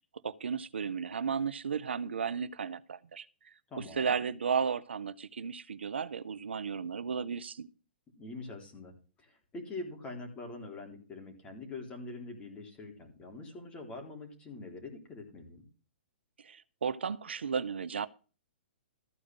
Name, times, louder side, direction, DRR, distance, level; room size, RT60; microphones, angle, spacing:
voice 1, 0.2-7.7 16.4-18.1, right 6 dB, 80° right, 0.7 m, -34 dB
voice 2, 3.7-4.1 8.2-8.9 9.2-15.6, left 2 dB, 20° left, 3.8 m, -44 dB
14.0 x 5.0 x 7.7 m
hypercardioid pair, 125°, 6 cm